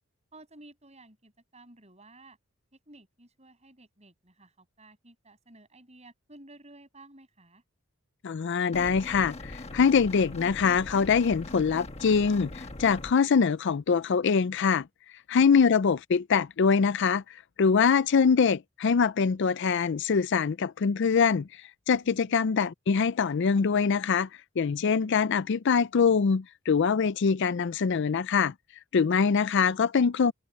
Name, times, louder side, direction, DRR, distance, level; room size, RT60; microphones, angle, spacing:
voice 1, 0.3-2.4 2.9-7.6 15.3-15.4 22.0-22.5, right 2 dB, 30° right, 7.8 m, -54 dB
voice 2, 8.2-14.9 15.3-24.3 24.6-28.5 28.9-30.3, left 5 dB, 55° left, 0.4 m, -24 dB
sound 1, 8.7-13.1, left 2 dB, 30° left, 1.3 m, -41 dB
head